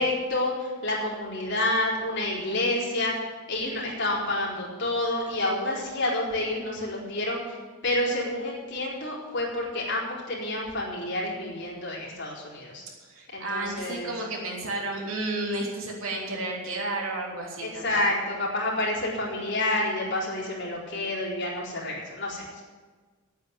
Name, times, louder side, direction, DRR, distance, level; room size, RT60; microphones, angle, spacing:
voice 1, 0.0-3.1 3.5-7.6 7.8-12.8 13.3-14.2 17.6-22.6, left 1 dB, 55° left, -4 dB, 4.3 m, -29 dB
voice 2, 13.0-18.0, right 2 dB, 75° right, -1 dB, 3.3 m, -32 dB
9.9 x 9.2 x 9.8 m, 1.5 s
head